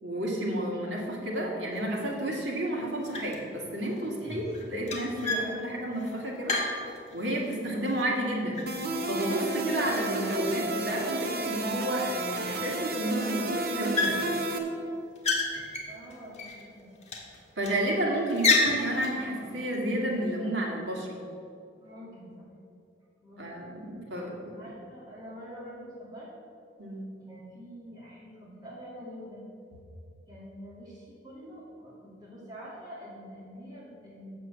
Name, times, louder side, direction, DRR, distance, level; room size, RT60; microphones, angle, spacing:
voice 1, 0.0-6.6 7.1-8.7 9.0-14.2 17.6-21.1 23.4-24.6 26.8-27.0, right 1 dB, 75° right, -2 dB, 2.1 m, -31 dB
sound 1, 1.7-1.8 2.3-2.7 3.0-3.5 3.8-7.5 7.8-9.6 9.8-10.8 11.4-11.5 11.7-11.8 12.2-12.9 13.2-13.5 13.9-14.6 14.9-16.6 17.0-17.8 18.2-19.2, left 3 dB, 35° left, 1.5 m, -31 dB
sound 2, 8.7-14.6, right 2 dB, 55° right, 1.0 m, -32 dB
voice 2, 15.9-16.9 21.8-22.5 23.2-23.5 24.1-26.3 27.3-29.4 30.3-34.3, equal, 20° right, -8 dB, 2.5 m, -46 dB
7.7 x 6.8 x 7.1 m, 2.6 s
head